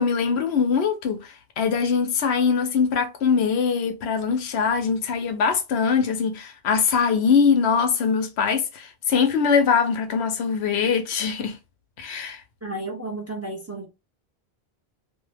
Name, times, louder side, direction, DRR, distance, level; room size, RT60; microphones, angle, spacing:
voice 1, 0.0-11.6 12.0-12.4, left 6 dB, 85° left, 0.9 m, -22 dB
voice 2, 12.6-13.9, right 2 dB, 20° right, 0.6 m, -32 dB
2.7 x 2.1 x 3.3 m
omnidirectional pair, 1.1 m